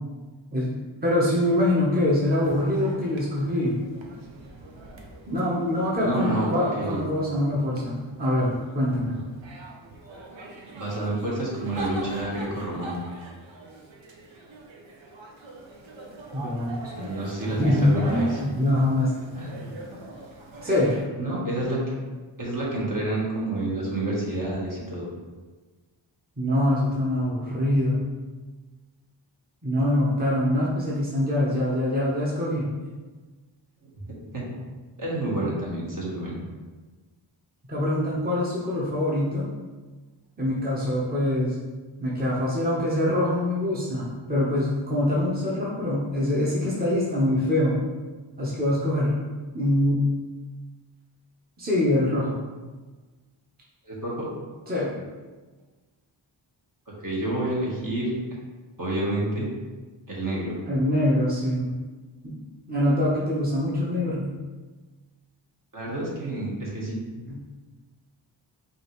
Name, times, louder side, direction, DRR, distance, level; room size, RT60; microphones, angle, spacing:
voice 1, 1.0-3.8 5.3-9.2 16.3-17.1 17.6-19.1 20.6-20.9 26.4-28.0 29.6-32.7 37.7-39.5 40.4-41.6 42.0-47.8 48.4-49.1 49.5-50.1 51.6-52.4 54.7-55.0 60.6-61.8 62.2-62.4 62.7-64.4 67.3-67.4, left 1 dB, 20° right, -7 dB, 1.0 m, -24 dB
sound 1, 2.3-21.1, right 2 dB, 75° right, 0.8 m, -42 dB
voice 2, 6.0-6.5 6.8-7.1 10.7-13.0 16.9-18.4 19.3-19.8 21.2-21.8 22.4-25.1 27.5-27.6 33.8-33.9 34.3-34.6 35.0-36.4 53.8-54.3 56.9-58.1 58.8-59.5 60.1-60.5 65.7-67.0, right 1 dB, 45° right, -5 dB, 1.4 m, -29 dB
5.2 x 2.6 x 3.1 m, 1.3 s
wide cardioid pair, 60°, 47 cm